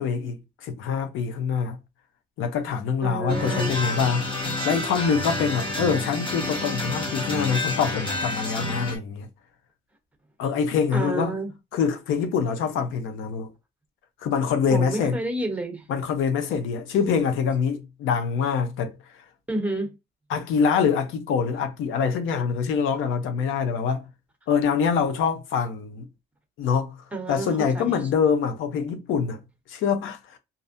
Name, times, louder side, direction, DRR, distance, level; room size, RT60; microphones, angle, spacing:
voice 1, 0.0-1.8 2.4-9.3 10.4-11.3 11.7-13.5 14.2-15.2 15.9-19.0 20.3-24.0 24.5-26.0 26.6-27.0 27.3-29.4 29.7-30.4, left 6 dB, 90° left, 0.6 m, -25 dB
voice 2, 3.0-3.7 10.9-11.5 14.7-15.8 19.5-19.9 27.1-27.9, right 2 dB, 5° right, 0.9 m, -29 dB
sound 1, 3.3-9.0, left 2 dB, 25° left, 0.9 m, -29 dB
2.6 x 2.0 x 2.5 m
cardioid pair, 90°, 20 cm